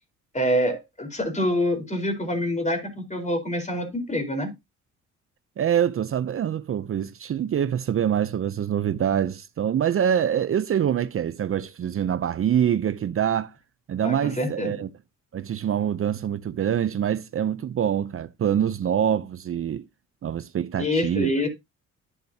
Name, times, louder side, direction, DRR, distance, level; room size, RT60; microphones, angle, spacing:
voice 1, 0.3-4.5 14.0-14.7 20.8-21.5, equal, 25° left, 4.5 m, -26 dB
voice 2, 5.6-13.5 13.9-14.9 15.3-19.8 20.2-21.3, right 9 dB, 45° right, 0.7 m, -25 dB
11.0 x 9.5 x 2.9 m
cardioid pair, 90°, 30 cm